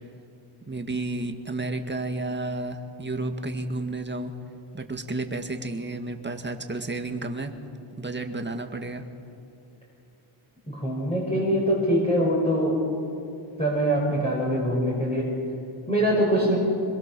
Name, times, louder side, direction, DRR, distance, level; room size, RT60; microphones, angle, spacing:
voice 1, 0.7-4.3 4.7-7.5 8.0-9.0, right 2 dB, 20° right, 5 dB, 2.1 m, -31 dB
voice 2, 10.7-12.8 13.6-15.2 15.9-16.6, equal, 15° left, -5 dB, 5.6 m, -23 dB
26.0 x 22.5 x 7.0 m, 2.5 s
cardioid pair, 95°, 49 cm